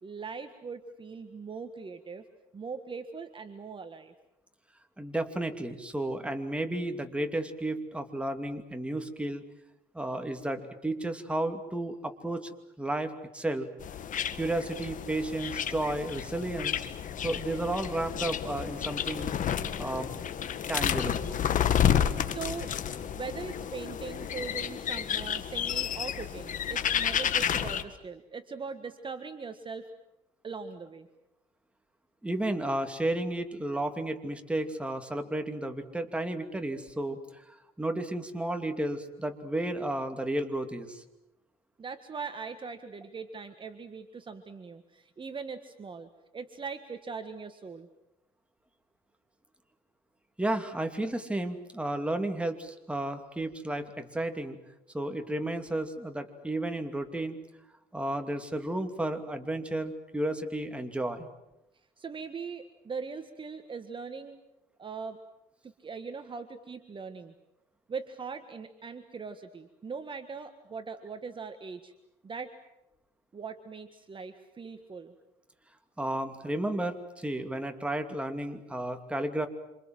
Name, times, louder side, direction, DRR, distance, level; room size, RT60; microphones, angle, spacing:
voice 1, 0.0-2.3 2.5-4.1 21.8-22.7 23.1-29.9 30.4-31.1 41.8-47.9 62.0-64.4 64.8-65.2 65.6-67.3 67.9-71.9 72.2-72.5 73.3-75.1, right 5 dB, 30° right, 8 dB, 1.7 m, -41 dB
voice 2, 5.0-9.4 9.9-12.5 12.8-13.7 14.3-16.8 17.2-20.1 20.7-21.3 32.2-41.0 50.4-54.6 54.9-57.4 57.9-61.3 76.0-79.5, right 1 dB, 5° right, 6 dB, 2.7 m, -33 dB
sound 1, 13.8-27.8, left 9 dB, 50° left, 1.8 m, -31 dB
27.5 x 27.0 x 7.8 m, 0.89 s
cardioid pair, 110°, 17 cm